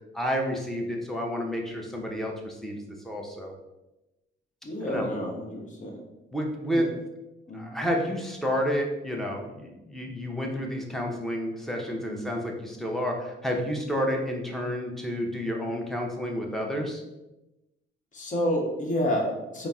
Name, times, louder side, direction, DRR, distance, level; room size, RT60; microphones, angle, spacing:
voice 1, 0.1-2.8 3.0-3.5 4.9-5.1 6.3-6.9 7.5-17.0, equal, ahead, 0 dB, 0.7 m, -30 dB
voice 2, 4.6-6.0 6.8-6.9 7.5-7.8 12.1-12.4 18.1-19.7, equal, 40° left, -1 dB, 1.0 m, -29 dB
4.0 x 2.0 x 3.5 m, 0.98 s
cardioid pair, 90°, 20 cm